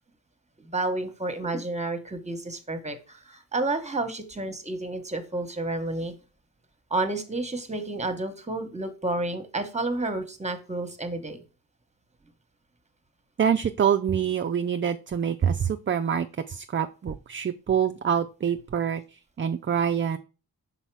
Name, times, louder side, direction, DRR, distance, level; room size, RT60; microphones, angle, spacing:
voice 1, 0.6-6.1 6.9-11.4, right 2 dB, 20° right, 8 dB, 1.0 m, -30 dB
voice 2, 13.4-20.2, right 8 dB, 35° right, 7 dB, 0.4 m, -26 dB
5.6 x 4.1 x 4.6 m, 0.33 s
wide cardioid pair, 85°, 38 cm